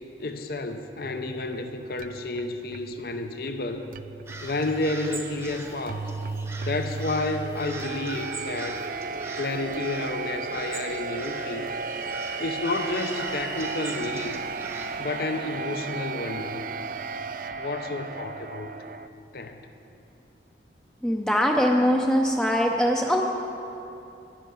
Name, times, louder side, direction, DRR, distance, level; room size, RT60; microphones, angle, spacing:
voice 1, 0.2-3.9 4.4-6.1 6.6-8.8 9.4-11.7 12.4-14.4 15.0-16.7 17.6-18.7 19.3-19.7, left 2 dB, 55° left, 7 dB, 0.6 m, -31 dB
sound 1, 1.0-19.1, right 4 dB, 50° right, 0.3 m, -35 dB
sound 2, 4.3-15.0, right 2 dB, 15° right, 0.9 m, -40 dB
voice 2, 21.0-23.2, equal, 5° left, 1 dB, 0.5 m, -22 dB
10.5 x 10.0 x 6.3 m, 2.8 s
head